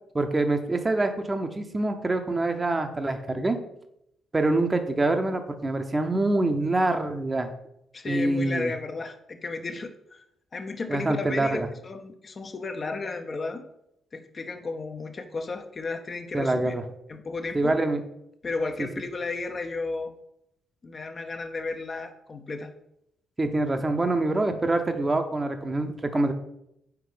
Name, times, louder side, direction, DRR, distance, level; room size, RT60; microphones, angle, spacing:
voice 1, 0.1-3.6 4.3-7.5 8.1-8.7 10.9-11.7 16.3-16.8 17.5-18.0 23.4-26.3, right 2 dB, 25° right, 6 dB, 0.8 m, -25 dB
voice 2, 7.9-10.2 10.5-13.6 14.1-16.8 17.1-17.8 18.4-20.1 20.8-22.7, left 3 dB, 35° left, 6 dB, 0.7 m, -33 dB
5.9 x 4.6 x 5.0 m, 0.80 s
figure-of-eight pair, 40°, 0 cm